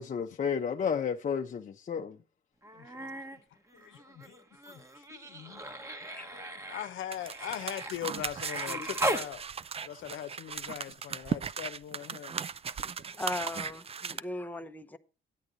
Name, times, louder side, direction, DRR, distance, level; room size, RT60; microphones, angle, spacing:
voice 1, 0.0-2.2 8.7-8.9, left 7 dB, 40° left, 0.6 m, -32 dB
Human voice, 2.6-3.4 3.7-9.3 10.9-11.0, right 1 dB, 15° right, 1.2 m, -38 dB
voice 2, 2.7-3.4 3.7-5.6 6.3-9.5 9.8-12.4 12.8-12.9 14.1-14.2, left 11 dB, 75° left, 0.8 m, -41 dB
sound 1, 7.1-14.2, right 6 dB, 30° right, 0.4 m, -38 dB
voice 3, 13.2-15.0, left 2 dB, 10° left, 0.8 m, -38 dB
10.0 x 8.3 x 3.9 m
cardioid pair, 90°, 20 cm